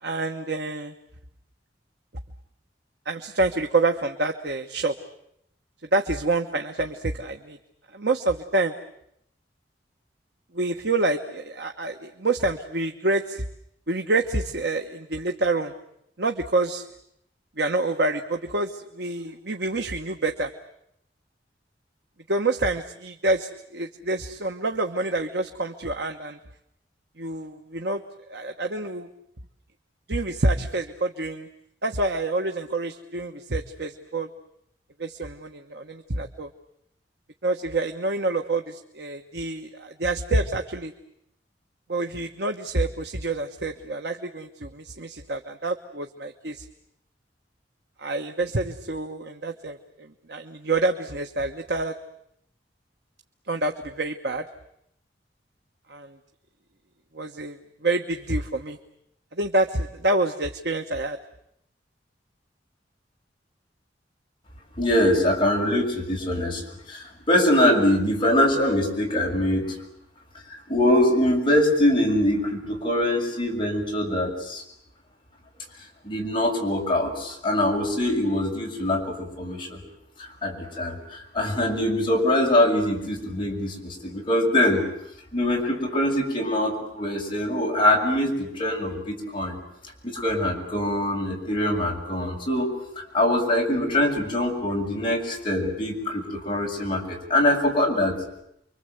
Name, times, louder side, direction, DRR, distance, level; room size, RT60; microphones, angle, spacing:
voice 1, 0.0-0.9 3.0-4.9 5.9-7.6 7.9-8.7 10.5-13.4 13.9-15.7 16.2-16.9 17.6-20.5 22.3-26.4 27.2-28.0 28.3-29.1 30.1-31.5 31.8-34.3 35.0-36.5 37.4-40.9 41.9-46.6 48.0-51.9 53.5-54.4 55.9-56.2 57.1-58.8 59.3-61.2, right 2 dB, 65° right, 4 dB, 1.3 m, -27 dB
voice 2, 64.8-66.6 66.9-69.7 70.5-74.6 76.0-79.8 80.4-84.8 85.3-89.6 90.0-98.2, left 1 dB, 30° left, -1 dB, 7.0 m, -23 dB
29.5 x 24.5 x 8.1 m, 0.76 s
head